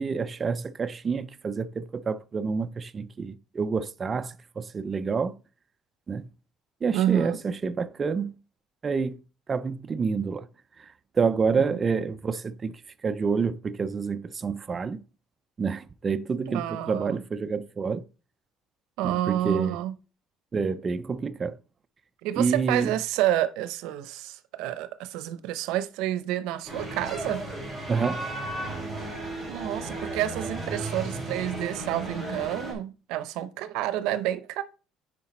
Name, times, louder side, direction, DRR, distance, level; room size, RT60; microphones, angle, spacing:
voice 1, 0.0-5.4 6.1-6.3 6.8-8.3 8.8-9.2 9.5-10.5 10.8-15.0 15.6-18.0 19.0-19.8 20.5-21.6 22.4-22.9 27.9-28.3, right 5 dB, 20° right, 0.3 m, -28 dB
voice 2, 6.9-7.4 11.6-11.8 16.5-17.2 19.0-19.9 22.2-27.4 29.5-34.6, right 13 dB, 85° right, 0.6 m, -29 dB
sound 1, 26.6-32.7, right 2 dB, 5° right, 4.0 m, -34 dB
9.9 x 4.8 x 4.2 m
cardioid pair, 175°, 0 cm